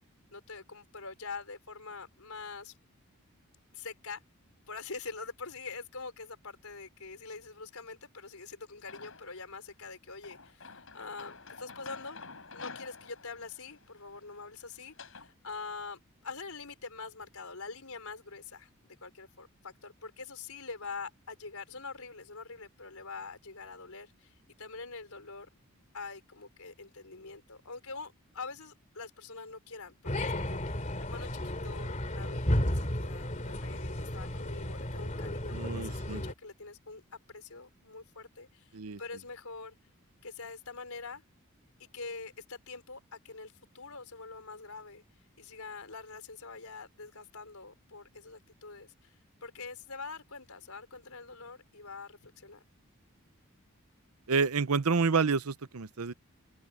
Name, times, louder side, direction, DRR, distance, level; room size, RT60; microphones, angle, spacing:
voice 1, 0.3-2.8 3.7-4.2 4.7-12.2 12.5-25.5 25.9-39.7 40.2-41.2 41.8-45.0 45.4-49.1 49.4-52.6, left 4 dB, 80° left, 4.1 m, -45 dB
sound 1, 8.9-9.5 10.2-15.3, left 4 dB, 65° left, 7.2 m, -49 dB
sound 2, 30.0-36.3, left 1 dB, 35° left, 3.2 m, -33 dB
voice 2, 35.5-36.2 38.7-39.0 54.3-56.1, right 5 dB, 80° right, 0.8 m, -29 dB
open air
head